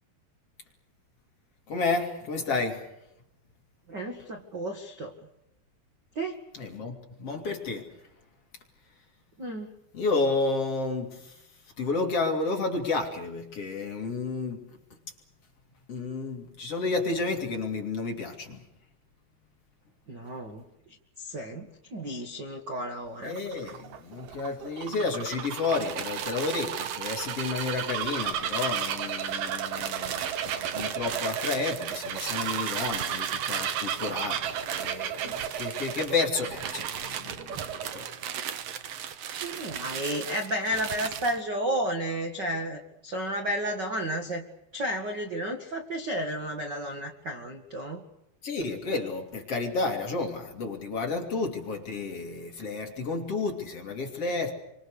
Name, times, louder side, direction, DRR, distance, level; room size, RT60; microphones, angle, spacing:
voice 1, 1.7-2.9 6.5-7.9 9.9-11.5 11.8-14.6 15.9-18.6 23.2-38.1 48.4-54.5, left 3 dB, 40° left, 3.5 m, -31 dB
voice 2, 3.9-5.1 6.1-6.4 9.4-9.7 20.1-20.6 21.2-23.3 35.2-35.4 39.4-44.4 44.7-48.0, equal, 40° right, 1.7 m, -32 dB
Bird vocalization bird call bird song, 23.1-38.1, right 9 dB, 65° right, 2.7 m, -34 dB
sound 1, 25.6-41.4, right 9 dB, 90° right, 1.4 m, -38 dB
29.0 x 25.5 x 6.6 m
omnidirectional pair, 4.7 m